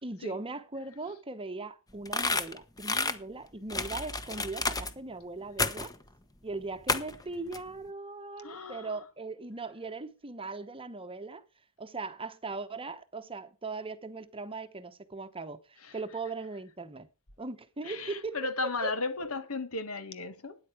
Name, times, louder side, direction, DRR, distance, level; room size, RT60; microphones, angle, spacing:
voice 1, 0.0-5.9 6.4-11.4 11.8-17.1 17.4-18.9, right 3 dB, 25° right, 1.0 m, -39 dB
sound 1, 2.1-3.1 3.7-4.9 5.6-5.9 6.9-7.2 7.5-7.6, left 3 dB, 15° left, 1.0 m, -30 dB
voice 2, 8.4-8.9 15.9-16.0 17.8-20.6, left 3 dB, 75° left, 1.7 m, -35 dB
13.5 x 9.8 x 4.9 m
head